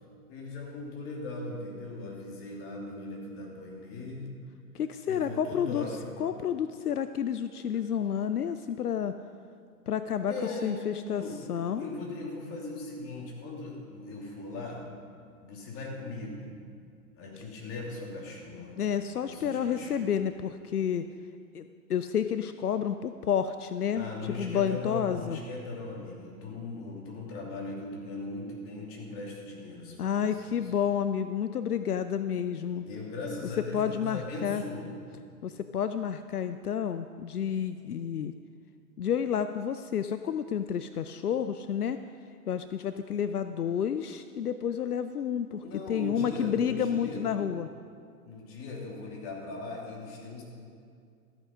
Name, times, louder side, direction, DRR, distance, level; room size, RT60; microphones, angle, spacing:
voice 1, 0.3-4.3 5.1-6.1 10.3-10.8 11.1-14.8 15.4-16.5 17.2-18.8 19.2-20.1 23.9-30.7 32.7-35.0 45.6-47.3 48.2-50.4, left 2 dB, 30° left, -1 dB, 2.7 m, -39 dB
voice 2, 4.7-5.9 6.2-9.2 9.9-10.3 10.6-11.2 11.5-11.8 18.8-21.1 21.5-25.4 30.0-32.8 33.7-34.6 35.4-38.3 39.0-42.0 42.5-47.7, left 8 dB, 80° left, 10 dB, 0.6 m, -30 dB
13.5 x 8.2 x 5.6 m, 2.3 s
figure-of-eight pair, 105°, 45 cm